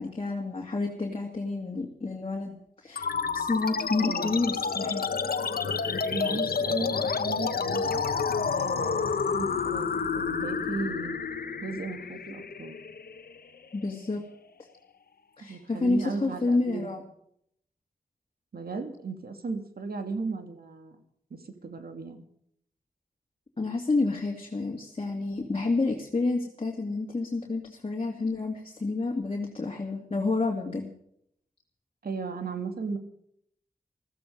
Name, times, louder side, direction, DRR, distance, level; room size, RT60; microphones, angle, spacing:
voice 1, 0.0-3.1 3.3-5.0 13.7-14.2 15.4-17.0 23.6-30.9, left 3 dB, 35° left, 0 dB, 2.4 m, -29 dB
sound 1, 3.0-13.9, left 5 dB, 80° left, 1.2 m, -29 dB
voice 2, 4.0-4.4 6.1-8.0 8.4-11.2 11.6-12.8 15.4-17.0 18.5-21.0 21.4-22.2 32.0-33.0, right 4 dB, 80° right, 7 dB, 2.2 m, -36 dB
15.5 x 14.5 x 5.3 m, 0.72 s
wide cardioid pair, 95°, 15 cm